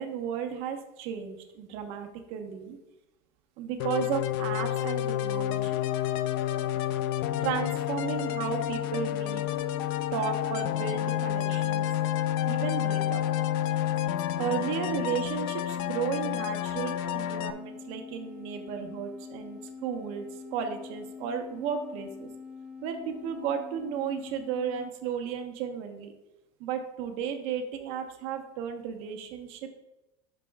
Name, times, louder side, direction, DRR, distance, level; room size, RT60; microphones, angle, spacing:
voice 1, 0.0-2.8 3.6-5.7 7.4-9.4 10.1-11.9 12.5-13.2 14.4-20.2 20.5-22.3 22.8-26.1 26.6-29.7, right 8 dB, 55° right, 5 dB, 1.0 m, -34 dB
sound 1, 3.8-17.5, left 12 dB, 75° left, 0.4 m, -29 dB
sound 2, 5.3-24.9, left 5 dB, 10° right, 1.0 m, -45 dB
11.5 x 5.3 x 2.3 m, 0.96 s
cardioid pair, 160°, 12 cm